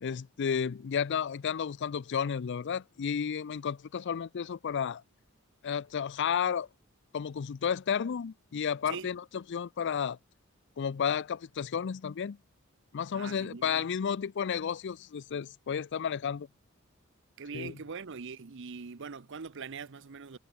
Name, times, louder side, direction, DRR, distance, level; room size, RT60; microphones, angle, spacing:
voice 1, 0.0-5.0 5.6-6.7 7.1-10.2 10.8-12.4 12.9-16.5 17.5-17.7, left 7 dB, 60° left, 0.4 m, -32 dB
voice 2, 13.1-13.9 17.4-20.4, right 5 dB, 60° right, 0.8 m, -42 dB
head